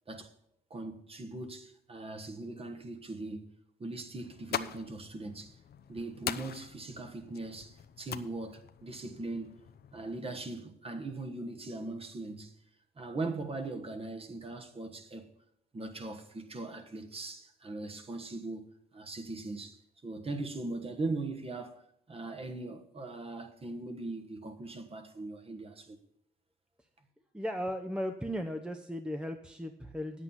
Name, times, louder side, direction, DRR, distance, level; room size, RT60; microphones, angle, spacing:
voice 1, 0.7-3.5 3.8-5.6 5.9-9.6 9.9-12.5 13.0-15.3 15.7-26.0, right 2 dB, 30° right, 1.3 m, -40 dB
sound 1, 4.2-10.2, left 9 dB, 55° left, 0.6 m, -43 dB
voice 2, 27.3-30.2, equal, 5° right, 0.7 m, -36 dB
9.5 x 8.3 x 5.7 m
cardioid pair, 90°, 20 cm